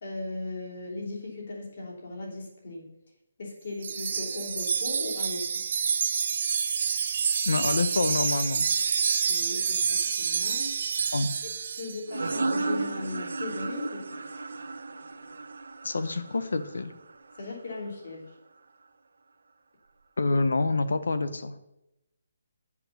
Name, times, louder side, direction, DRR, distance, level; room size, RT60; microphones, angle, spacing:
voice 1, 0.0-2.9 3.4-5.6 9.3-10.8 11.4-14.1 17.4-18.3, left 2 dB, 40° left, -2 dB, 3.0 m, -38 dB
Wind chime, 3.8-12.0, right 6 dB, 35° right, 0.4 m, -28 dB
voice 2, 7.5-8.7 11.1-11.3 15.8-16.9 20.2-21.6, left 3 dB, 85° left, 12 dB, 1.0 m, -27 dB
sound 1, 12.1-17.4, right 3 dB, 80° right, 1.0 m, -33 dB
8.4 x 7.5 x 6.6 m, 0.90 s
hypercardioid pair, 180°, 0 cm